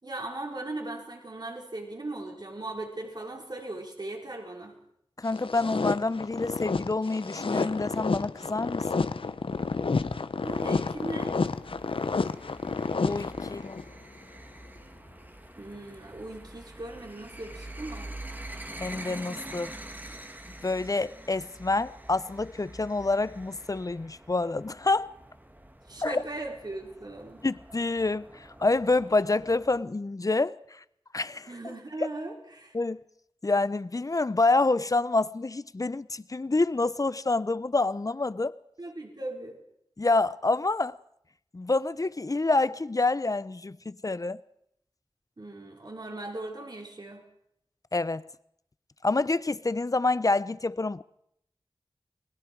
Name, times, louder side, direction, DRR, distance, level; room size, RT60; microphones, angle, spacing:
voice 1, 0.0-4.8 10.4-11.3 15.6-18.1 25.9-27.4 31.5-32.7 38.8-39.6 45.4-47.2, right 2 dB, 45° right, 5.1 m, -38 dB
voice 2, 5.2-9.1 13.0-13.8 18.8-19.7 20.6-25.1 26.0-26.2 27.4-30.8 31.1-31.7 32.0-32.1 32.7-33.0 33.4-38.6 40.0-40.9 41.5-44.4 47.9-48.3 49.0-51.0, left 3 dB, 35° left, 0.7 m, -27 dB
sound 1, 5.3-13.9, left 4 dB, 65° left, 0.9 m, -30 dB
sound 2, 10.4-29.8, right 1 dB, 20° right, 1.9 m, -46 dB
29.5 x 20.5 x 4.7 m
wide cardioid pair, 55°, 10 cm